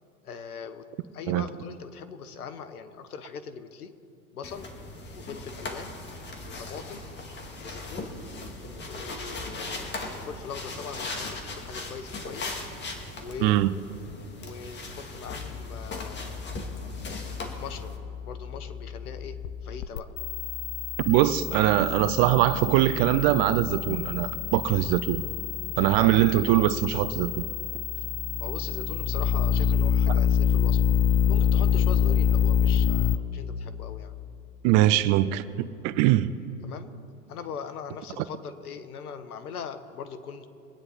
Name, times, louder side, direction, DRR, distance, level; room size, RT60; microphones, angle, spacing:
voice 1, 0.2-0.9 1.1-3.9 4.3-4.7 5.1-5.9 6.4-7.0 7.5-8.1 8.7-12.5 13.2-13.6 14.4-16.5 17.6-18.0 18.2-20.1 28.4-30.8 31.3-34.1 36.6-36.9 37.3-40.5, left 6 dB, 80° left, 1.3 m, -41 dB
sound 1, 4.4-18.0, left 2 dB, 25° left, 2.0 m, -38 dB
voice 2, 13.4-13.7 21.0-25.2 25.8-27.5 34.6-36.3 38.2-38.3, right 14 dB, 40° right, 0.6 m, -22 dB
sound 2, 15.3-33.2, left 8 dB, 40° left, 0.8 m, -27 dB
23.5 x 9.5 x 4.2 m
hypercardioid pair, 105°, 44 cm